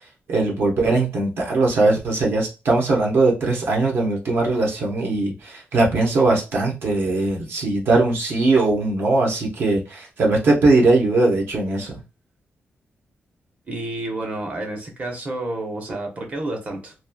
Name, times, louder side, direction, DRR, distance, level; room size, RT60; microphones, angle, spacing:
voice 1, 0.3-12.0, right 2 dB, 65° right, -1 dB, 0.9 m, -20 dB
voice 2, 13.7-16.9, right 2 dB, 35° right, 2 dB, 0.9 m, -30 dB
3.0 x 2.5 x 2.2 m, 0.29 s
wide cardioid pair, 160°, 4 cm